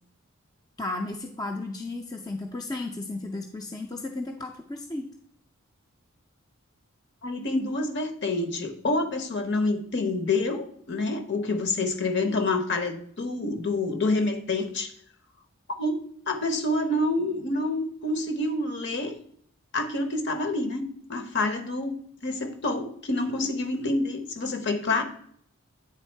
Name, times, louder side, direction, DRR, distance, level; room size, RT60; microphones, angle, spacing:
voice 1, 0.8-5.1, left 2 dB, 15° left, 3 dB, 0.4 m, -34 dB
voice 2, 7.2-14.9 15.8-15.9 16.3-19.2 19.7-20.8 21.1-22.0 22.2-25.0, left 2 dB, 55° left, 6 dB, 0.9 m, -27 dB
9.0 x 3.6 x 4.5 m, 0.64 s
head